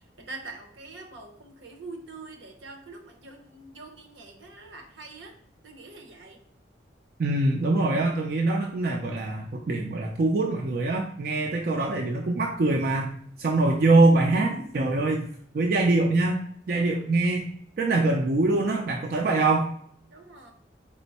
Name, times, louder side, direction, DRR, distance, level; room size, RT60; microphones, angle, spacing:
voice 1, 0.2-5.3 5.6-6.4 20.1-20.5, right 3 dB, 80° right, 4 dB, 0.8 m, -44 dB
voice 2, 7.2-13.1 13.4-15.3 15.5-16.4 16.7-17.5 17.8-19.7, right 2 dB, 55° right, 1 dB, 0.4 m, -23 dB
4.3 x 2.0 x 4.1 m, 0.63 s
head